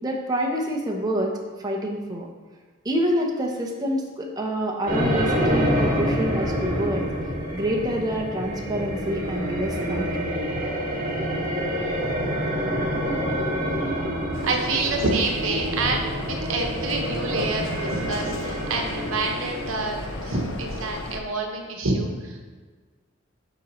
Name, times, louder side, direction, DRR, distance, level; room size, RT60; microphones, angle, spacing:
voice 1, 0.0-2.3 2.8-7.0 7.5-10.3, equal, 20° right, 0 dB, 0.8 m, -27 dB
sound 1, 4.8-21.1, equal, 40° right, 1.8 m, -27 dB
sound 2, 14.3-21.2, left 2 dB, 75° left, 0.7 m, -35 dB
voice 2, 14.4-22.4, right 3 dB, 70° right, 2 dB, 1.0 m, -27 dB
7.8 x 6.0 x 3.1 m, 1.5 s
head